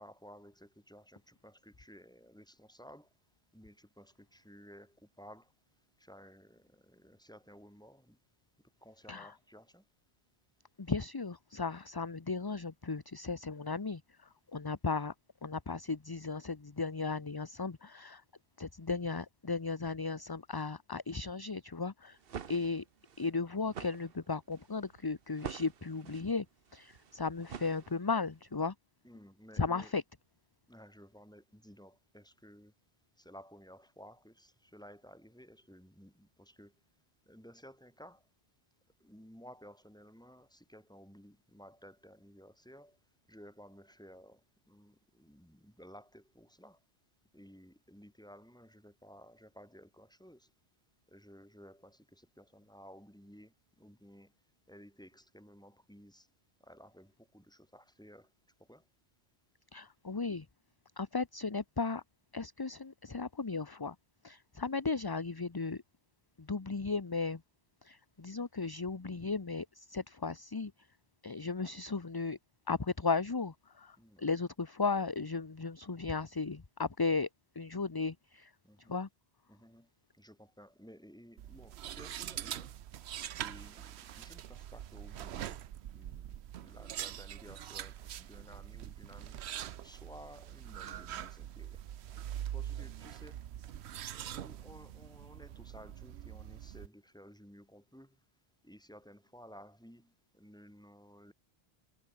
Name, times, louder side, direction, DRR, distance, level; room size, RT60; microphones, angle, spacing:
voice 1, 0.0-3.1 3.5-5.5 6.0-8.2 8.8-9.9 22.3-22.5 29.0-29.9 30.7-32.7 33.2-36.7 37.3-38.3 39.0-43.0 43.3-46.8 47.3-50.5 51.1-54.3 54.7-56.3 56.6-58.3 58.6-58.9 74.0-74.3 78.6-78.9 79.5-82.7 83.4-85.6 85.9-89.4 89.8-91.8 92.5-93.4 94.1-98.2 98.6-101.3, equal, 5° left, 4.4 m, -56 dB
voice 2, 10.8-15.1 15.4-18.2 18.6-22.2 22.5-22.8 23.2-26.4 26.7-28.7 29.6-30.0 59.7-60.4 61.0-62.0 62.3-63.9 64.2-65.8 66.4-67.4 67.8-70.7 71.2-72.4 72.7-77.3 77.6-78.5 78.9-79.1, left 4 dB, 25° left, 0.8 m, -35 dB
sound 1, 22.0-28.3, right 7 dB, 65° right, 1.1 m, -47 dB
sound 2, 81.4-96.9, right 11 dB, 85° right, 1.0 m, -43 dB
omnidirectional pair, 1.1 m